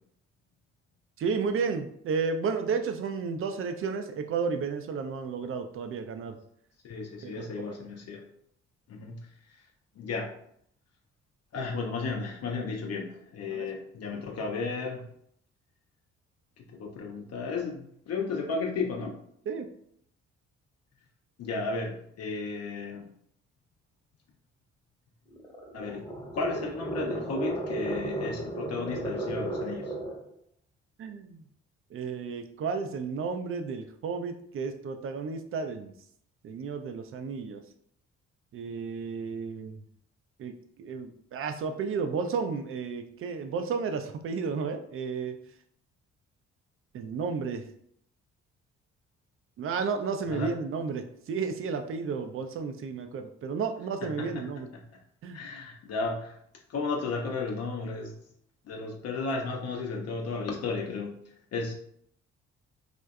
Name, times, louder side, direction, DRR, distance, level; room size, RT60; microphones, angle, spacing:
voice 1, 1.2-6.4 7.2-7.5 13.5-13.7 19.5-19.7 31.0-31.4 31.9-35.9 36.4-37.6 38.5-39.8 40.4-45.4 46.9-47.7 49.6-54.7 55.2-55.4, right 5 dB, 40° right, 7 dB, 0.4 m, -32 dB
voice 2, 6.8-8.2 8.9-9.3 10.0-10.3 11.5-15.1 16.7-19.2 21.4-23.1 25.7-26.0 26.3-29.9 50.3-50.5 54.0-54.3 55.3-56.4 56.7-58.2 58.7-61.1 61.5-61.7, left 4 dB, 50° left, 1 dB, 0.5 m, -33 dB
sound 1, 25.3-30.3, right 1 dB, 15° left, 0.8 m, -34 dB
2.5 x 2.1 x 2.3 m, 0.67 s
hypercardioid pair, 45°, 32 cm